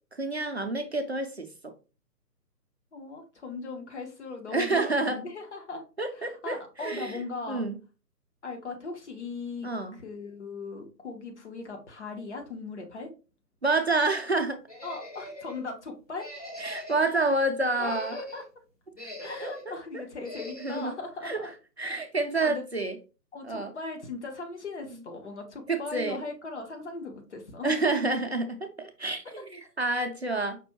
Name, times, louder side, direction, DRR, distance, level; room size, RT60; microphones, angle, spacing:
voice 1, 0.1-1.7 4.5-5.2 6.0-7.2 7.5-7.8 9.6-9.9 13.6-14.6 16.6-18.2 19.4-20.0 20.6-20.9 21.2-21.5 21.8-22.9 23.4-23.7 25.7-26.2 27.6-30.6, right 2 dB, 45° right, 0.4 m, -28 dB
voice 2, 2.9-5.8 6.1-7.6 8.4-13.1 14.8-16.3 17.8-18.4 19.2-21.5 22.4-22.6 23.3-27.9 29.2-29.4, left 3 dB, 45° left, 1.1 m, -39 dB
sound 1, 14.7-15.6 16.2-17.1 17.6-18.5 18.9-19.7 20.2-20.9, left 1 dB, 25° left, 0.7 m, -41 dB
5.2 x 2.7 x 2.9 m
figure-of-eight pair, 150°, 49 cm